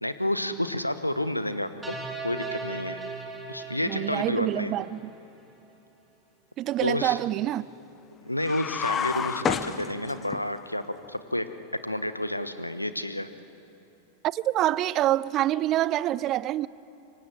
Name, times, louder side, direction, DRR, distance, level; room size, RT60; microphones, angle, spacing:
voice 1, 0.0-2.0 2.2-3.0 3.5-4.7 6.8-7.2 8.2-10.8 11.1-11.4 11.8-13.3, left 1 dB, 85° left, 1.0 m, -30 dB
sound 1, 1.8-5.1, right 3 dB, 10° right, 3.7 m, -38 dB
voice 2, 3.8-5.1 6.6-7.7 14.2-16.7, right 14 dB, 35° right, 0.5 m, -26 dB
sound 2, 8.4-10.4, left 7 dB, 25° left, 1.1 m, -29 dB
26.0 x 24.5 x 7.5 m
figure-of-eight pair, 90°, 0 cm